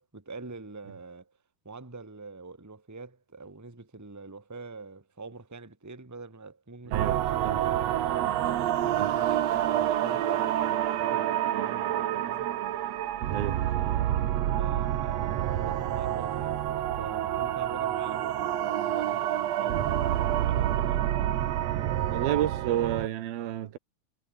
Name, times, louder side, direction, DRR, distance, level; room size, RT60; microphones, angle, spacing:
voice 1, 0.0-1.3 1.6-7.1 7.5-8.0 8.5-12.6 14.6-21.3, right 3 dB, 5° right, 1.7 m, -45 dB
sound 1, 6.9-23.1, right 12 dB, 65° right, 1.8 m, -28 dB
voice 2, 6.9-7.6 9.0-9.1 13.3-13.8 22.1-23.8, right 12 dB, 80° right, 3.3 m, -30 dB
omnidirectional pair, 4.3 m